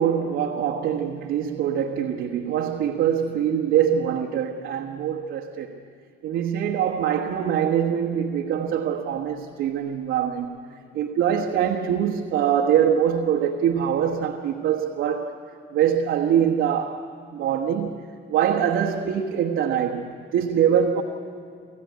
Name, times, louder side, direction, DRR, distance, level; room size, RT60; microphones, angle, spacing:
voice 1, 0.0-5.8 6.2-10.6 10.9-15.4 15.7-17.0 17.3-18.0 18.3-21.0, right 9 dB, 85° right, 1.3 m, -23 dB
27.5 x 15.0 x 9.4 m
cardioid pair, 90°, 20 cm